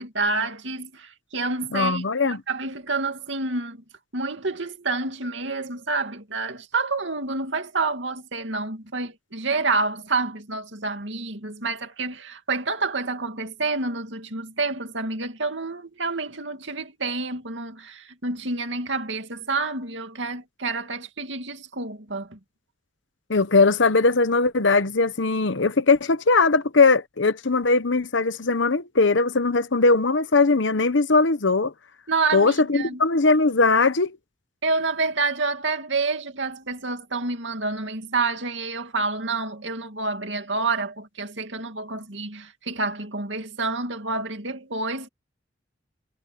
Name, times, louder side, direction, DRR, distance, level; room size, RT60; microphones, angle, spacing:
voice 1, 0.0-3.8 4.1-22.4 32.1-33.0 34.6-45.1, right 3 dB, 70° right, 2.6 m, -28 dB
voice 2, 1.7-2.4 23.3-31.7 32.3-34.2, left 3 dB, 70° left, 1.0 m, -20 dB
head